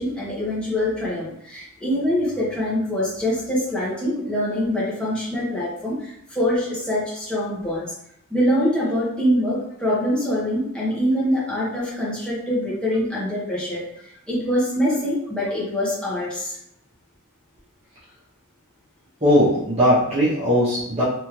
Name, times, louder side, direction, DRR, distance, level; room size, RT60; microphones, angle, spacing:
voice 1, 0.0-7.9 8.3-13.8 14.3-16.6, equal, 5° left, -9 dB, 1.4 m, -24 dB
voice 2, 19.2-21.0, equal, 30° right, -10 dB, 1.0 m, -19 dB
3.4 x 3.3 x 3.2 m, 0.75 s
head